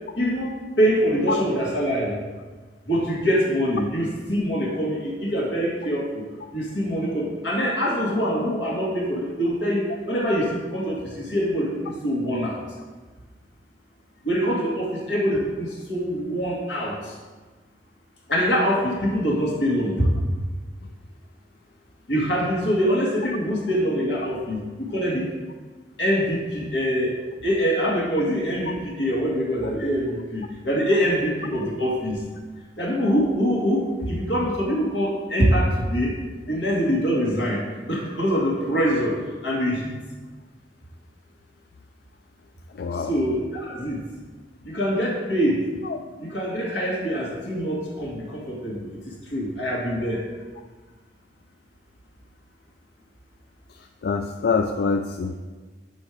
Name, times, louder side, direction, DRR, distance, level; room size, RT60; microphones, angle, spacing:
voice 1, 0.1-2.2 2.9-6.2 6.5-12.6 14.2-17.1 18.3-20.1 22.1-25.3 26.0-27.2 27.4-32.2 32.8-36.2 36.5-37.6 37.9-40.0 42.9-44.0 44.6-45.6 46.2-50.2, equal, 85° left, -3 dB, 2.0 m, -24 dB
voice 2, 42.7-43.2 45.8-46.0 53.7-55.4, left 4 dB, 65° left, 6 dB, 0.4 m, -25 dB
6.5 x 5.2 x 4.9 m, 1.3 s
head